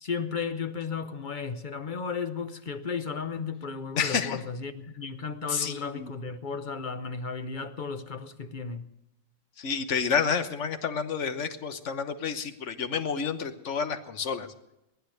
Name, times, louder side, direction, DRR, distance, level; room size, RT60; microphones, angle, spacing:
voice 1, 0.0-8.9, left 5 dB, 40° left, 0.9 m, -34 dB
voice 2, 4.0-4.4 5.5-6.1 9.6-14.5, left 6 dB, 60° left, 1.4 m, -29 dB
19.0 x 11.5 x 6.5 m
omnidirectional pair, 1.4 m